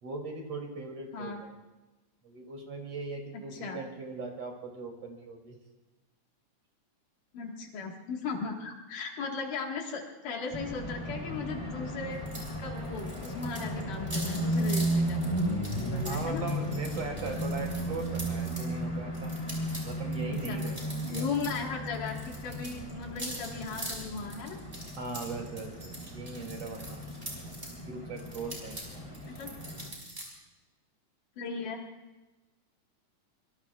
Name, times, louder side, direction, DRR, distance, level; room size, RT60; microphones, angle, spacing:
voice 1, 0.0-1.5 2.2-5.6 13.3-13.4 16.0-19.3 19.8-21.4 25.0-27.1 27.9-29.1, right 3 dB, 50° right, 1 dB, 3.7 m, -39 dB
voice 2, 3.5-3.8 7.3-12.2 12.6-15.2 15.8-16.4 20.5-20.6 21.0-24.6 29.4-29.5 31.4-31.8, left 4 dB, 80° left, 1 dB, 3.3 m, -37 dB
sound 1, 10.5-29.9, right 1 dB, 10° left, 2.6 m, -35 dB
sound 2, 12.3-12.5 12.8-18.7 19.1-21.6 21.9-27.7 28.2-30.2, right 1 dB, 15° right, 5.2 m, -43 dB
25.0 x 23.0 x 2.4 m, 1.1 s
omnidirectional pair, 3.7 m